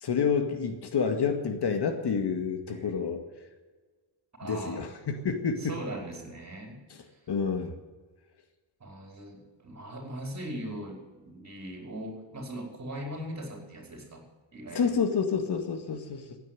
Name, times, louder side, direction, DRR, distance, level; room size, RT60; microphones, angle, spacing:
voice 1, 0.0-3.2 4.4-5.7 7.3-7.7 14.7-16.4, left 6 dB, 55° left, 6 dB, 2.1 m, -28 dB
voice 2, 4.4-4.8 5.6-6.8 8.8-14.2 14.5-14.9, right 1 dB, 35° right, 2 dB, 4.9 m, -40 dB
16.0 x 9.4 x 9.3 m, 1.3 s
cardioid pair, 125°, 47 cm